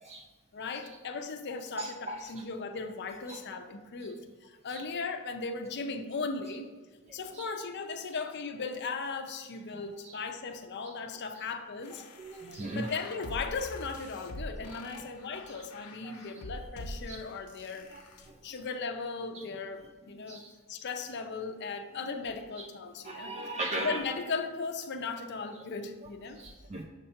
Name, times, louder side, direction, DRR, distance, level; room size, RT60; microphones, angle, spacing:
voice 1, 0.5-6.7 7.1-12.0 12.7-17.9 18.4-20.4 20.7-23.3 23.8-26.4, left 4 dB, 50° left, 6 dB, 0.5 m, -37 dB
voice 2, 1.8-2.2 3.3-3.4 4.7-4.8 7.3-7.5 9.7-10.2 12.2-12.9 16.0-16.2 17.1-17.2 17.9-18.0 20.3-20.5 22.6-22.7 23.0-24.0 26.4-26.8, right 2 dB, 30° right, 0 dB, 0.4 m, -38 dB
sound 1, 11.8-18.3, left 1 dB, 80° left, 0.7 m, -45 dB
6.6 x 2.8 x 5.5 m, 1.3 s
head